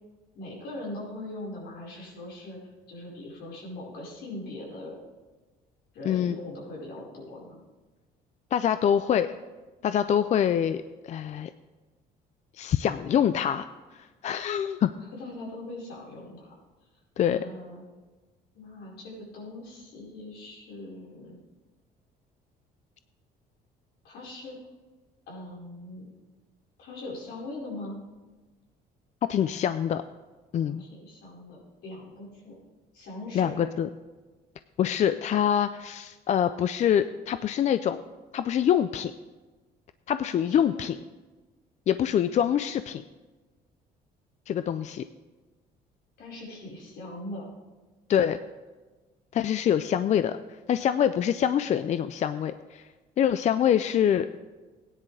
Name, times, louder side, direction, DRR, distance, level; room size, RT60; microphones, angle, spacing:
voice 1, 0.3-2.6 2.9-5.0 5.9-7.6 15.1-16.5 17.2-17.8 18.5-21.4 24.0-24.6 25.3-26.1 26.8-28.0 30.7-32.6 32.9-33.7 40.4-40.8 46.2-47.4, left 2 dB, 80° left, -4 dB, 4.7 m, -41 dB
voice 2, 6.0-6.4 8.5-9.3 9.8-11.5 12.5-13.7 13.9-14.9 17.2-17.5 29.2-30.0 30.5-30.8 33.3-33.9 34.8-38.0 38.3-39.1 40.1-41.0 41.9-43.0 44.5-45.1 48.1-48.4 49.3-52.9 53.2-54.3, left 9 dB, 45° left, 12 dB, 0.4 m, -25 dB
16.5 x 10.0 x 3.3 m, 1.2 s
cardioid pair, 110°, 17 cm